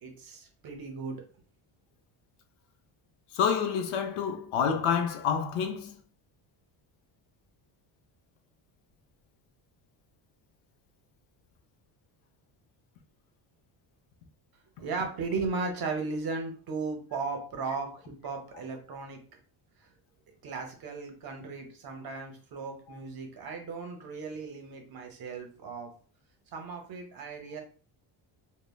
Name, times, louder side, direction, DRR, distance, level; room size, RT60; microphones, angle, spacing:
voice 1, 0.0-1.2 14.8-19.2 20.4-25.9 26.5-27.6, right 4 dB, 45° right, 0.7 m, -36 dB
voice 2, 3.3-5.9, left 7 dB, 85° left, 0.6 m, -28 dB
3.1 x 2.1 x 2.2 m
cardioid pair, 160°, 49 cm